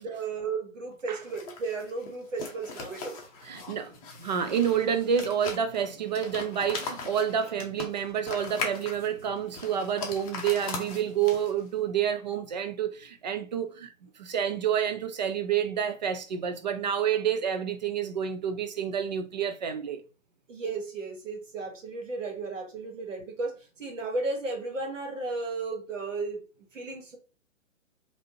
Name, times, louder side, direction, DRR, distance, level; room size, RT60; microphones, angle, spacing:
voice 1, 0.0-3.2 20.5-26.5 26.7-27.2, right 3 dB, 65° right, 1.5 m, -34 dB
sound 1, 1.2-11.7, left 4 dB, 25° left, 0.7 m, -40 dB
voice 2, 3.4-20.0, right 8 dB, 35° right, 0.4 m, -29 dB
3.3 x 2.6 x 2.7 m
figure-of-eight pair, 130°, 40 cm